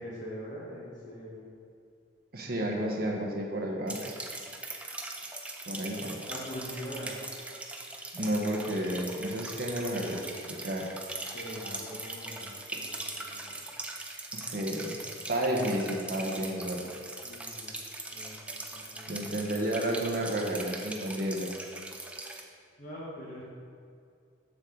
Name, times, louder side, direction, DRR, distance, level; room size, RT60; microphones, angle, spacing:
voice 1, 0.0-1.5 6.3-7.1 11.3-13.6 17.2-17.8 18.1-19.2 22.8-23.4, equal, 45° left, -6 dB, 1.2 m, -43 dB
voice 2, 2.3-4.0 5.7-6.2 8.1-10.2 10.5-10.9 14.3-15.0 15.3-16.9 19.1-21.5, right 1 dB, 50° right, -1 dB, 1.0 m, -31 dB
sound 1, 3.9-22.4, right 2 dB, 5° right, 0.4 m, -41 dB
7.3 x 6.4 x 3.8 m, 2.3 s
head